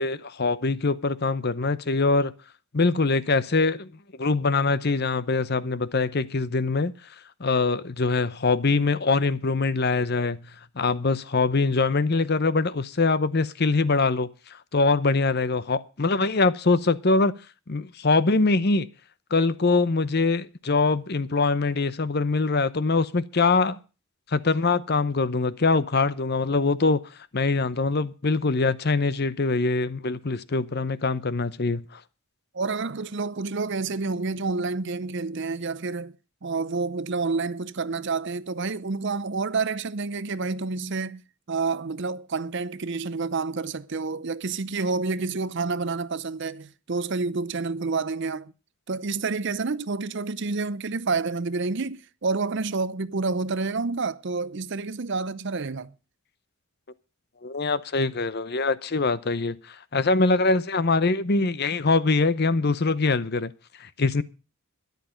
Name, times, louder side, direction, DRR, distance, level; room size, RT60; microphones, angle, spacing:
voice 1, 0.0-2.3 2.7-3.9 4.2-6.9 7.4-10.4 10.8-17.3 17.7-18.9 19.3-23.8 24.3-27.0 27.3-32.0 57.4-63.5 63.8-64.2, left 3 dB, 45° left, 0.7 m, -23 dB
voice 2, 32.5-36.2 36.4-41.2 41.5-48.5 48.9-55.9, right 4 dB, 55° right, 0.6 m, -29 dB
13.5 x 11.0 x 5.1 m
head